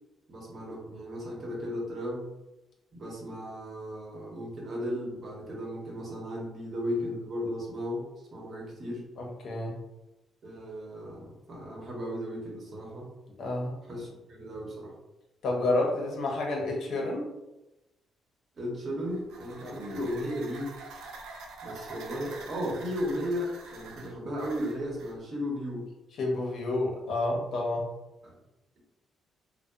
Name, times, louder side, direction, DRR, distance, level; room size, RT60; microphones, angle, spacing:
voice 1, 0.3-2.3 2.9-8.1 8.3-9.0 10.4-13.1 13.8-14.9 18.6-20.7 21.6-25.9 28.2-28.3, equal, 50° right, -3 dB, 0.9 m, -35 dB
voice 2, 9.2-9.8 13.4-13.8 15.4-17.3 19.6-19.8 26.2-27.9, left 2 dB, 70° left, -1 dB, 0.6 m, -29 dB
sound 1, 18.9-25.2, right 3 dB, 85° right, 0.3 m, -46 dB
2.7 x 2.0 x 2.3 m, 0.96 s
cardioid pair, 90°, 0 cm